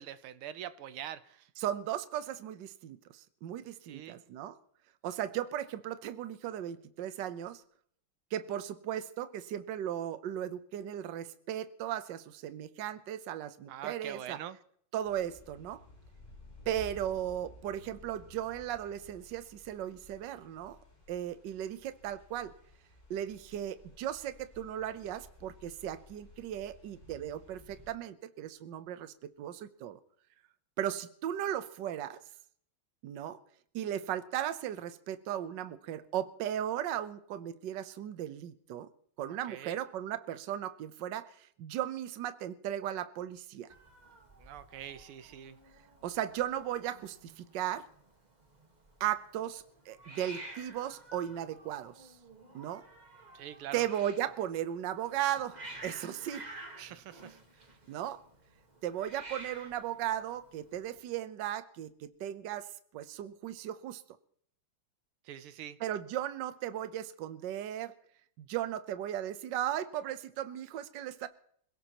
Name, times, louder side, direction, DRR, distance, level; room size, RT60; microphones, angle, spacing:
voice 1, 0.0-1.5 3.8-4.2 13.7-14.6 39.3-39.8 44.4-45.6 53.3-53.8 56.8-57.4 65.2-65.8, right 11 dB, 90° right, 1.7 m, -44 dB
voice 2, 1.6-4.6 5.0-7.6 8.3-14.4 14.9-15.8 16.7-20.8 21.1-22.5 23.1-30.0 30.8-32.2 33.0-33.4 33.7-38.9 39.2-43.7 46.0-47.9 49.0-52.1 52.5-52.8 53.7-56.5 57.9-58.2 58.8-64.0 65.8-67.9 68.4-71.3, right 11 dB, 65° right, 1.4 m, -36 dB
sound 1, 15.0-27.9, left 2 dB, 20° left, 5.8 m, -55 dB
Hiss, 43.7-61.0, right 2 dB, 20° right, 1.5 m, -51 dB
26.5 x 17.0 x 3.0 m
omnidirectional pair, 2.3 m